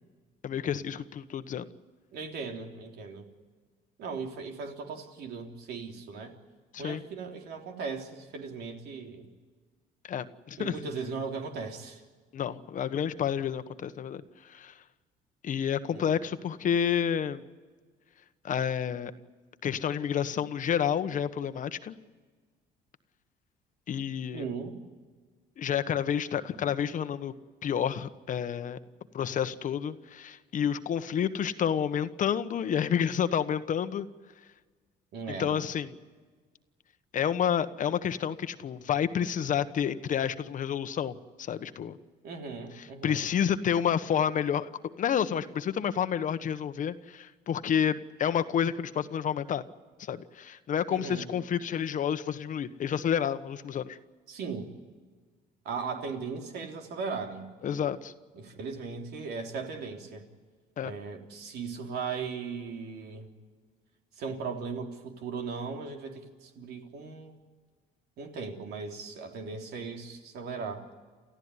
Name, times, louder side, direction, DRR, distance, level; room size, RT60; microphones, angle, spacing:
voice 1, 0.4-1.7 6.7-7.0 10.1-10.7 12.3-14.7 15.4-17.4 18.4-19.1 19.6-21.9 23.9-24.5 25.6-27.3 27.6-28.8 29.1-34.1 35.4-36.0 37.1-42.0 42.8-44.7 45.0-49.6 50.0-54.0 57.6-58.1 60.8-60.9, left 8 dB, 50° left, 11 dB, 1.2 m, -29 dB
voice 2, 2.1-3.3 4.0-6.3 6.8-9.3 10.6-12.0 15.9-16.1 24.3-24.7 35.1-35.5 42.2-43.2 50.9-51.3 54.3-54.7 55.7-57.5 58.3-60.2 60.8-63.3 64.2-67.4 68.2-70.8, right 5 dB, 75° right, 3 dB, 3.5 m, -38 dB
29.0 x 15.0 x 9.7 m, 1.4 s
cardioid pair, 110°, 17 cm